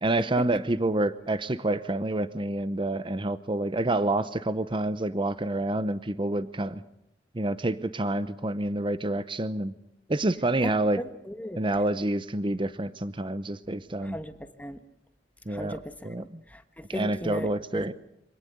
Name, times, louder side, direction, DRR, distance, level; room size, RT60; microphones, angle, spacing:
voice 1, 0.0-6.8 7.3-9.7 10.1-11.0 11.5-14.2 15.5-16.4 16.9-17.9, right 2 dB, 30° right, 13 dB, 0.8 m, -28 dB
voice 2, 11.2-11.6 14.0-14.8 15.5-17.8, left 1 dB, 10° left, 9 dB, 1.3 m, -38 dB
25.5 x 18.5 x 8.1 m, 0.78 s
head